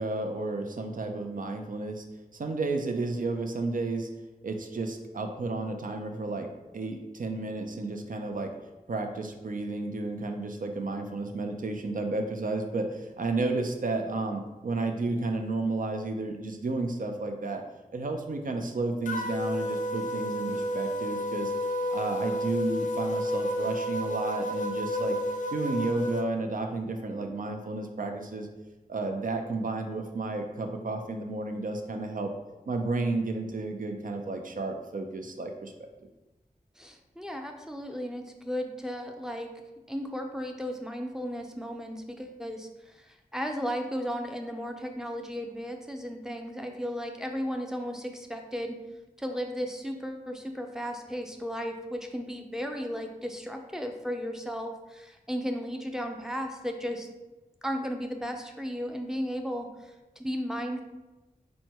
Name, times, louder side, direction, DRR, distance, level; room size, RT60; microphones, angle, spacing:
voice 1, 0.0-2.0 2.3-4.1 4.4-8.5 8.9-17.6 17.9-21.5 21.9-25.2 25.5-28.5 28.9-32.3 32.7-35.9, right 3 dB, 70° right, 4 dB, 0.5 m, -32 dB
sound 1, 19.1-26.2, left 1 dB, 65° left, 0.4 m, -31 dB
voice 2, 36.8-39.5 39.9-48.8 49.2-57.1 57.6-59.7 60.2-60.8, equal, 5° right, 4 dB, 0.5 m, -35 dB
4.2 x 2.2 x 4.5 m, 1.0 s
wide cardioid pair, 75°, 15 cm